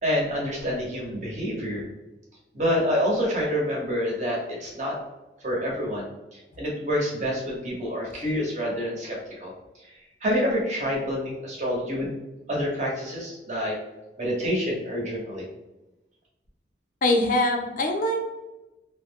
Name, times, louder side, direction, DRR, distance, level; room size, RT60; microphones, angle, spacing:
voice 1, 0.0-1.9 2.5-5.0 5.4-12.1 12.5-13.8 14.2-15.4, equal, 40° right, -3 dB, 0.9 m, -27 dB
voice 2, 17.0-18.2, left 1 dB, 50° left, 2 dB, 0.4 m, -23 dB
2.4 x 2.1 x 3.3 m, 1.0 s
head